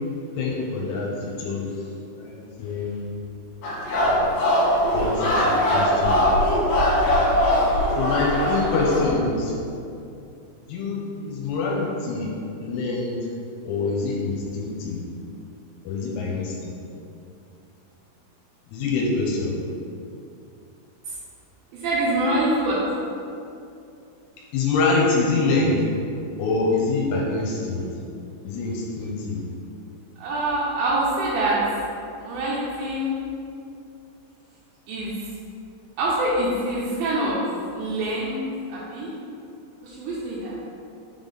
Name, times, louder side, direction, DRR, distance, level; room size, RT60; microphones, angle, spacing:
voice 1, 0.4-1.7 2.1-3.0 4.0-4.5 4.9-6.2 8.0-9.5 10.7-12.3 12.6-13.2 13.7-15.0 15.8-16.7 18.7-19.5 24.5-25.8 26.4-27.8 28.4-29.4, left 3 dB, 85° left, -3 dB, 3.1 m, -25 dB
sound 1, 3.6-9.2, equal, 70° left, 3.2 m, -21 dB
voice 2, 21.8-22.8 30.2-31.6 32.2-33.1 34.9-35.2 36.0-38.4 38.7-39.1 39.8-40.6, right 1 dB, 80° right, -7 dB, 2.8 m, -25 dB
7.3 x 3.7 x 3.9 m, 2.6 s
omnidirectional pair, 5.7 m